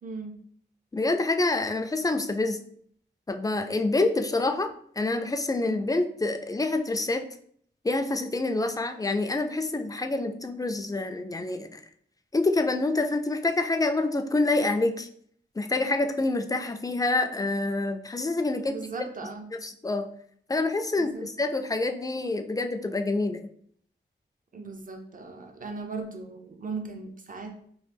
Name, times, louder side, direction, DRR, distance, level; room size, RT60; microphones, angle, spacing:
voice 1, 0.0-0.4 18.7-19.5 21.0-21.3 24.5-27.6, right 4 dB, 45° right, 5 dB, 0.5 m, -38 dB
voice 2, 0.9-2.6 3.3-7.3 7.8-11.8 12.3-15.1 15.6-18.9 19.6-20.1 20.5-23.5, left 2 dB, 20° left, 7 dB, 0.3 m, -27 dB
3.1 x 2.4 x 3.3 m, 0.63 s
cardioid pair, 60°, 20 cm